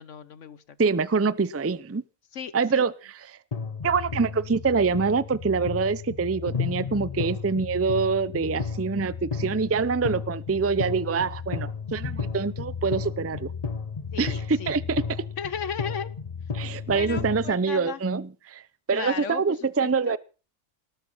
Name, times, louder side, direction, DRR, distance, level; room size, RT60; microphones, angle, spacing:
voice 1, 0.0-0.8 2.3-2.8 14.1-14.8 15.4-16.1 16.9-18.0 18.9-20.2, left 7 dB, 60° left, 1.2 m, -36 dB
voice 2, 0.8-2.0 2.5-3.4 3.8-13.5 14.2-15.0 16.5-18.6 18.9-20.2, right 5 dB, 20° right, 0.4 m, -25 dB
sound 1, 3.5-17.5, left 5 dB, 30° left, 0.9 m, -33 dB
19.0 x 12.5 x 5.6 m
omnidirectional pair, 1.5 m